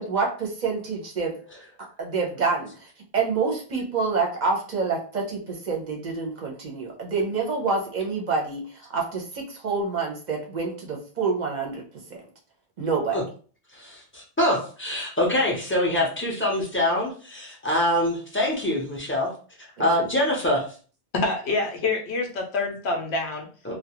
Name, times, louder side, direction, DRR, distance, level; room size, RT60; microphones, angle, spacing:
voice 1, 0.0-1.3 2.0-11.8 12.1-12.2 12.8-13.2 19.8-19.9, right 4 dB, 50° right, 0 dB, 0.7 m, -27 dB
voice 2, 13.7-19.3 19.8-20.7 23.6-23.7, left 1 dB, 15° left, -3 dB, 0.6 m, -24 dB
voice 3, 21.1-23.5, left 3 dB, 75° left, 2 dB, 0.8 m, -26 dB
2.3 x 2.1 x 2.8 m, 0.40 s
omnidirectional pair, 1.1 m